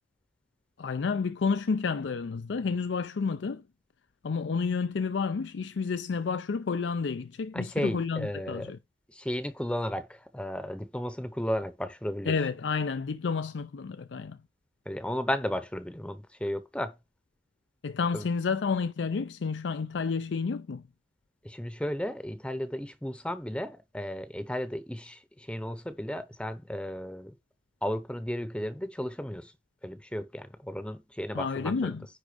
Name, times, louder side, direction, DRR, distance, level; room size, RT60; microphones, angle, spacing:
voice 1, 0.8-3.6 4.2-8.8 12.3-14.4 17.8-20.8 31.3-32.1, left 5 dB, 85° left, 0.5 m, -30 dB
voice 2, 7.5-8.7 9.1-12.3 14.9-16.9 18.1-18.2 21.4-27.3 27.8-29.5 29.8-32.0, equal, 5° left, 0.7 m, -34 dB
10.0 x 3.6 x 5.0 m
head